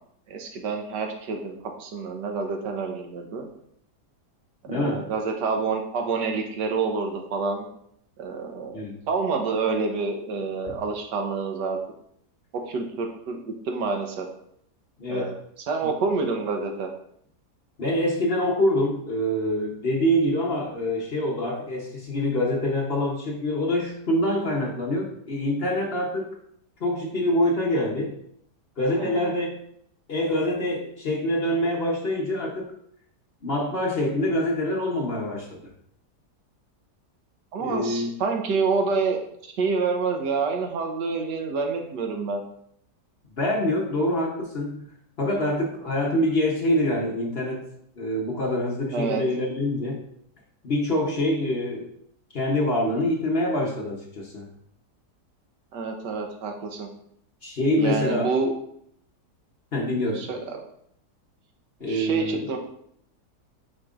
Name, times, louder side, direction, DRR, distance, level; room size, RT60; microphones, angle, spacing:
voice 1, 0.3-1.5 1.8-3.5 4.7-7.7 8.2-8.8 9.1-11.8 12.7-13.4 13.7-14.3 15.1-15.3 15.7-16.9 29.0-29.3 37.5-42.4 48.9-49.2 55.7-56.9 57.8-58.5 60.1-60.6 61.9-62.6, right 4 dB, 90° right, 3 dB, 1.5 m, -27 dB
voice 2, 4.7-5.1 8.7-9.0 15.0-15.3 15.8-15.9 17.8-26.3 26.8-28.2 28.8-29.6 30.1-32.7 33.4-35.5 37.6-38.1 43.4-44.9 45.2-47.7 48.0-50.0 50.6-51.9 52.3-54.5 57.4-58.3 59.7-60.3 61.8-62.5, left 1 dB, 45° left, -1 dB, 1.0 m, -25 dB
8.9 x 4.4 x 2.4 m, 0.69 s
omnidirectional pair, 1.8 m